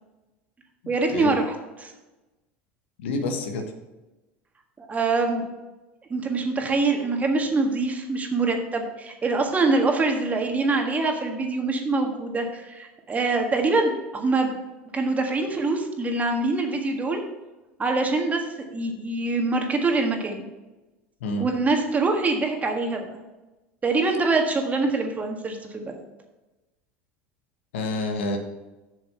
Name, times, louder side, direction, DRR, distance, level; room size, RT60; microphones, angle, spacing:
voice 1, 0.9-1.9 4.8-5.5 6.1-14.6 14.9-17.2 17.8-18.4 18.7-20.4 21.4-23.1 23.8-26.0, right 3 dB, 25° right, 3 dB, 1.7 m, -24 dB
voice 2, 3.0-3.6 21.2-21.5 27.7-28.4, left 2 dB, 80° left, 5 dB, 1.3 m, -28 dB
7.2 x 6.5 x 5.6 m, 1.1 s
hypercardioid pair, 85°, 6 cm